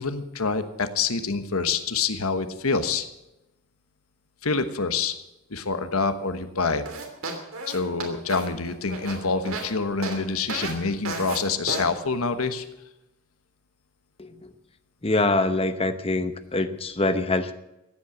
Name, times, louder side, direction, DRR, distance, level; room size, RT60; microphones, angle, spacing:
voice 1, 0.0-3.0 4.4-5.1 5.5-6.8 7.7-12.6, left 4 dB, 85° left, 10 dB, 1.2 m, -26 dB
sound 1, 6.9-9.7 10.0-10.2 10.5-10.7 11.1-11.4 11.7-11.8, right 3 dB, 70° right, 3.1 m, -32 dB
voice 2, 14.2-14.5 15.0-17.5, left 2 dB, 25° left, 10 dB, 0.9 m, -24 dB
15.5 x 8.7 x 7.9 m, 0.92 s
head